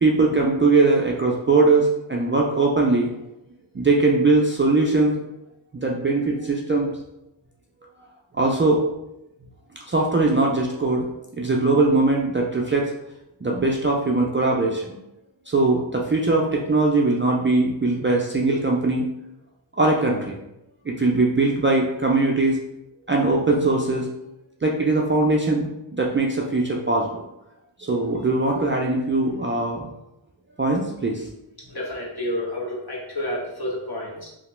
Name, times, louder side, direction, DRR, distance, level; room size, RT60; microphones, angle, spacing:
voice 1, 0.0-3.1 3.7-5.1 5.7-6.9 8.3-8.8 9.9-11.1 11.4-12.9 13.4-15.0 15.5-19.1 19.8-20.3 20.9-22.6 23.1-24.1 24.6-27.2 27.8-29.9 30.6-31.3, right 3 dB, 25° right, -2 dB, 0.4 m, -21 dB
voice 2, 31.7-34.3, left 1 dB, 50° left, -4 dB, 1.1 m, -30 dB
2.9 x 2.1 x 3.1 m, 0.88 s
cardioid pair, 45°, 48 cm